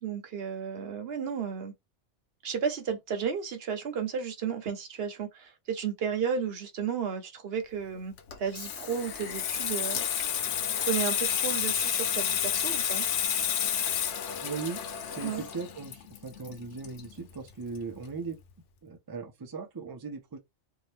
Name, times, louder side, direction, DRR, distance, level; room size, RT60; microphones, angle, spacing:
voice 1, 0.0-1.7 2.4-10.2 10.7-13.0 15.2-15.4, right 7 dB, 60° right, 0.9 m, -33 dB
Water tap faucet / Sink (filling or washing), 8.2-17.5 17.8-18.0, left 8 dB, 85° left, 0.9 m, -30 dB
voice 2, 14.4-18.4 18.8-20.4, right 4 dB, 30° right, 0.4 m, -38 dB
2.8 x 2.3 x 3.1 m
omnidirectional pair, 1.2 m